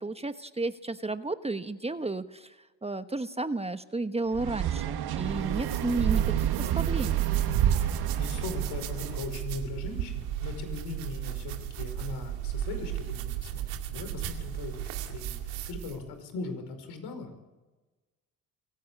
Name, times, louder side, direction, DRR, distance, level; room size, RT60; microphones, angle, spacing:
voice 1, 0.0-2.6 2.8-7.3, right 3 dB, 15° right, 10 dB, 1.2 m, -32 dB
sound 1, 4.3-9.2, right 10 dB, 65° right, 1.7 m, -29 dB
sound 2, 5.1-16.0, right 11 dB, 80° right, 2.4 m, -34 dB
voice 2, 7.7-17.4, left 4 dB, 65° left, 7 dB, 5.4 m, -40 dB
23.5 x 16.5 x 8.5 m, 1.2 s
hypercardioid pair, 60°, 41 cm